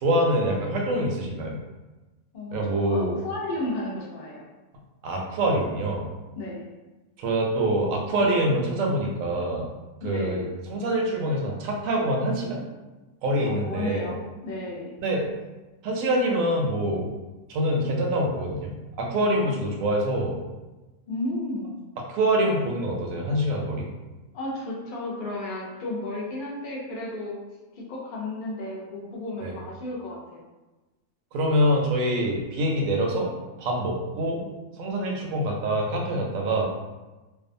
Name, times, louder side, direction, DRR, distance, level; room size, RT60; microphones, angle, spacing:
voice 1, 0.0-1.6 2.5-3.1 5.0-6.1 7.2-9.7 10.0-12.6 13.2-14.1 15.0-15.3 15.8-17.1 17.5-20.4 22.1-23.9 29.4-29.5 31.3-33.3 33.6-34.5 34.8-36.6, right 1 dB, 70° right, 0 dB, 0.9 m, -25 dB
voice 2, 2.3-4.5 6.4-6.6 10.0-10.4 13.4-14.9 19.4-19.5 21.1-21.7 24.3-27.4 27.8-30.5, left 2 dB, 65° left, -3 dB, 0.4 m, -33 dB
2.6 x 2.2 x 2.5 m, 1.1 s
omnidirectional pair, 1.6 m